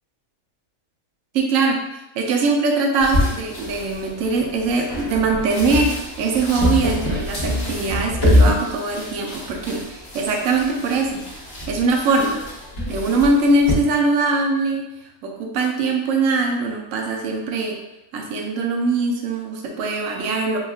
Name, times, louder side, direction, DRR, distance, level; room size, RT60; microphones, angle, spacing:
voice 1, 1.3-1.8 2.2-5.9 6.2-11.2 11.7-12.4 12.9-14.8 15.2-17.8 18.1-20.6, right 3 dB, 70° right, 1 dB, 1.0 m, -21 dB
sound 1, 3.0-13.7, left 1 dB, 70° left, 1.8 m, -25 dB
6.3 x 2.4 x 2.3 m, 0.93 s
omnidirectional pair, 1.5 m